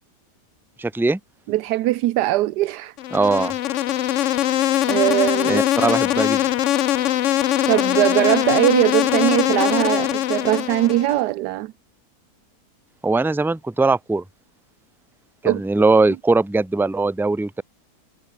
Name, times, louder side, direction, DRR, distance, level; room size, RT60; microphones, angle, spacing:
voice 1, 0.8-1.2 3.1-3.5 5.5-6.4 13.0-14.2 15.4-17.6, right 3 dB, ahead, 1.0 m, -20 dB
voice 2, 1.5-2.9 4.9-5.6 7.7-11.7 15.4-15.6, right 16 dB, 80° right, 1.2 m, -20 dB
Insect, 3.0-11.2, left 13 dB, 65° left, 0.7 m, -21 dB
omnidirectional pair, 1.8 m